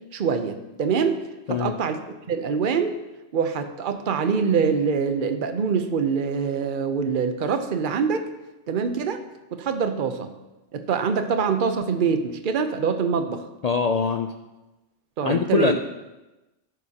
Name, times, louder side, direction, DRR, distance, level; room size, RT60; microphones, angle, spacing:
voice 1, 0.1-1.2 1.5-2.0 2.3-3.0 3.3-8.2 8.7-9.2 9.5-10.3 10.7-13.4 15.2-15.7, right 6 dB, 50° right, 8 dB, 0.9 m, -24 dB
voice 2, 13.6-14.3 15.2-15.8, left 5 dB, 60° left, 6 dB, 0.4 m, -23 dB
13.5 x 11.0 x 2.9 m, 1.1 s
omnidirectional pair, 1.2 m